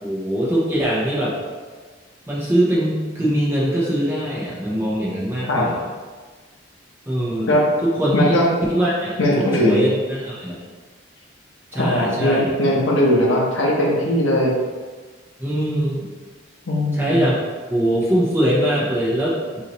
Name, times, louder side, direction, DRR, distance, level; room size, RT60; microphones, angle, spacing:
voice 1, 0.0-1.3 2.3-5.8 7.1-7.5 7.8-8.4 8.7-10.6 11.7-12.5 15.4-16.1 16.9-17.4 17.7-19.4, right 1 dB, 10° right, -6 dB, 0.9 m, -22 dB
voice 2, 8.1-8.5 9.2-9.8 11.7-14.5 16.7-17.2, left 1 dB, 85° left, -3 dB, 1.0 m, -19 dB
5.5 x 2.8 x 3.1 m, 1.4 s
head